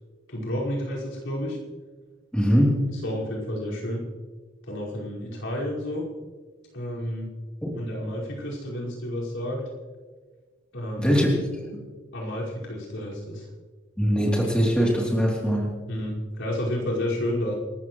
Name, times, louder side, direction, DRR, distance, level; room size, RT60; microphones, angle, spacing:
voice 1, 0.3-1.6 2.9-4.0 4.7-6.0 6.7-7.3 7.7-9.6 10.7-11.2 12.1-13.5 15.9-17.5, left 1 dB, 70° left, -5 dB, 5.3 m, -30 dB
voice 2, 2.3-2.9 7.6-7.7 11.0-11.3 14.0-15.7, equal, 5° left, -3 dB, 3.2 m, -21 dB
28.0 x 13.5 x 3.2 m, 1.4 s
head